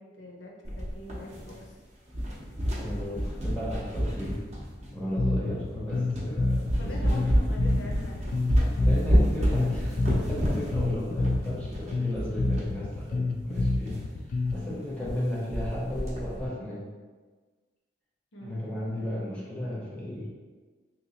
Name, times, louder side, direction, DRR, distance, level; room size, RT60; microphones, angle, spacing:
voice 1, 0.0-1.8 5.5-5.6 6.8-8.4 18.3-18.7, left 1 dB, 75° left, -1 dB, 0.7 m, -43 dB
sound 1, 0.6-1.8 2.1-5.1 5.7-5.8 6.1-6.3 6.7-12.7 13.0-13.1 13.4-13.5 13.9-14.0 14.5-14.6 14.8-15.2 15.5-16.5, equal, 40° right, 0.7 m, -28 dB
voice 2, 2.8-4.4 4.9-7.3 8.7-14.0 14.5-16.9 18.4-20.3, left 1 dB, 5° left, -7 dB, 0.6 m, -35 dB
Bass guitar, 5.2-14.7, left 2 dB, 45° left, 0.3 m, -29 dB
3.3 x 2.9 x 2.7 m, 1.4 s
head